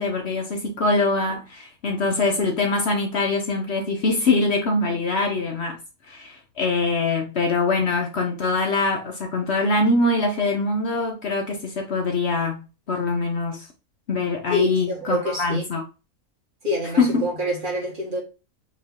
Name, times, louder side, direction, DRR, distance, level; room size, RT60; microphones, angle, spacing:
voice 1, 0.0-5.8 6.1-13.7 14.1-15.8 17.0-17.2, left 3 dB, 55° left, 0.9 m, -23 dB
voice 2, 14.5-15.6 16.6-18.2, equal, 40° right, 1.1 m, -26 dB
4.2 x 2.8 x 3.5 m
omnidirectional pair, 1.5 m